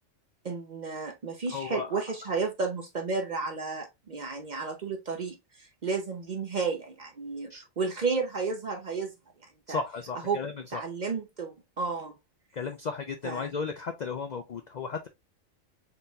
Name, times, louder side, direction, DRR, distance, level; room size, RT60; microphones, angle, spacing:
voice 1, 0.4-7.5 7.8-9.1 9.4-9.8 10.3-10.4 10.7-12.1 13.2-13.5, right 4 dB, 45° right, 0.6 m, -32 dB
voice 2, 1.5-2.0 7.5-7.6 9.7-10.8 12.5-15.1, left 5 dB, 60° left, 0.4 m, -35 dB
4.0 x 4.0 x 2.3 m
omnidirectional pair, 1.3 m